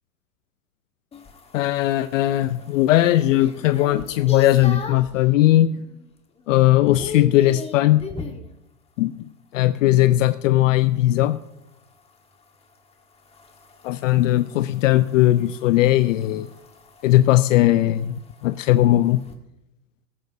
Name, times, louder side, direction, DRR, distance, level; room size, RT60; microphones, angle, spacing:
sound 1, 1.1-5.2 5.7-6.1 6.4-8.5 10.9-19.3, left 5 dB, 15° left, 1.4 m, -38 dB
voice 1, 1.5-5.7 6.5-8.0 9.0-9.2 9.5-11.4 13.8-16.5 17.0-19.2, left 15 dB, 60° left, 13 dB, 0.6 m, -18 dB
18.0 x 9.2 x 2.7 m, 0.88 s
hypercardioid pair, 120°, 45 cm